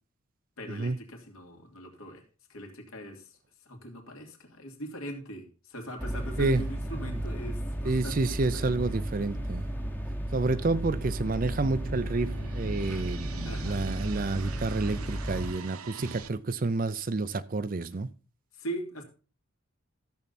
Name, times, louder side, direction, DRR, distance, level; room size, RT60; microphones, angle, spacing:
voice 1, 0.6-2.2 2.5-3.4 3.6-8.2 8.5-8.8 13.4-13.8 18.5-19.0, right 1 dB, 75° left, 2.8 m, -41 dB
sound 1, 6.0-15.5, equal, 10° left, 1.0 m, -34 dB
voice 2, 7.8-9.7 10.3-18.1, right 3 dB, 40° right, 0.5 m, -29 dB
sound 2, 11.0-16.3, right 4 dB, 85° right, 0.9 m, -43 dB
14.0 x 7.1 x 4.2 m
head